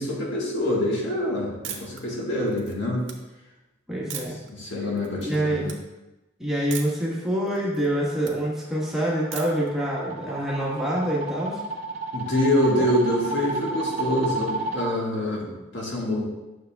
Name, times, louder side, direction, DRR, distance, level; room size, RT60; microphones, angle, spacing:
voice 1, 0.0-3.1 4.5-5.7 12.1-16.3, left 1 dB, 65° left, -3 dB, 1.6 m, -25 dB
sound 1, 1.6-2.0 2.5-3.1 4.1-4.5 5.0-5.4 5.6-5.8 6.7-7.1 7.4-8.3 9.3-9.7, right 8 dB, 70° right, 1.0 m, -37 dB
voice 2, 3.9-4.4 5.1-5.6 6.4-11.6 12.8-12.9, right 1 dB, ahead, -6 dB, 1.3 m, -26 dB
sound 2, 8.7-14.9, right 3 dB, 35° right, 0.9 m, -32 dB
9.6 x 6.7 x 2.3 m, 1.0 s
head